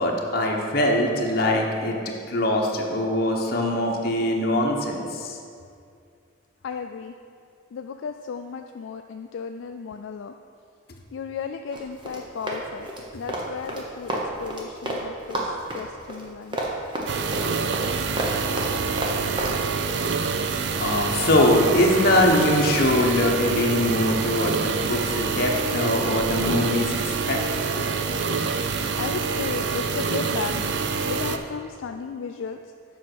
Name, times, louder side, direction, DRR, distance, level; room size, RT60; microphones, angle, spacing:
voice 1, 0.0-5.4 20.8-27.9, left 1 dB, 50° left, 0 dB, 1.1 m, -22 dB
voice 2, 6.6-7.1 7.7-10.4 11.1-12.9 13.1-16.7 17.7-17.8 29.0-30.8 31.1-32.6, left 6 dB, 70° left, 5 dB, 0.3 m, -34 dB
Run, 11.7-15.0 15.3-19.6, right 1 dB, 25° right, 1.0 m, -30 dB
sound 1, 17.1-31.4, right 5 dB, 60° right, 0.5 m, -26 dB
7.6 x 5.5 x 6.1 m, 2.3 s
head